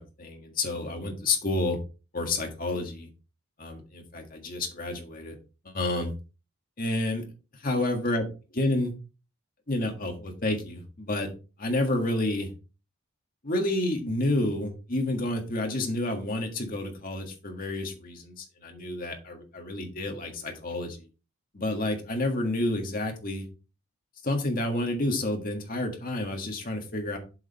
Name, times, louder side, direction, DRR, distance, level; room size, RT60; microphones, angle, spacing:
voice 1, 0.0-1.8 2.1-3.1 3.6-5.4 5.7-6.1 6.8-7.2 7.6-8.2 8.5-8.9 9.7-11.3 11.6-12.5 13.4-21.0 21.5-23.4 24.2-27.2, left 2 dB, 40° left, 3 dB, 1.7 m, -29 dB
7.8 x 5.0 x 4.2 m, 0.32 s
head